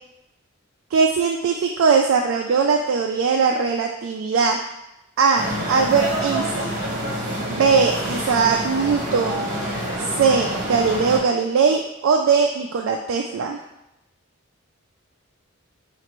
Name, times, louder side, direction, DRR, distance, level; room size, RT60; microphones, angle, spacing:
voice 1, 0.9-4.6 5.2-6.7 7.5-9.5 10.0-13.6, right 5 dB, 70° right, 2 dB, 0.3 m, -20 dB
sound 1, 5.4-11.2, right 1 dB, 40° right, 1.1 m, -27 dB
5.0 x 2.5 x 3.0 m, 0.89 s
head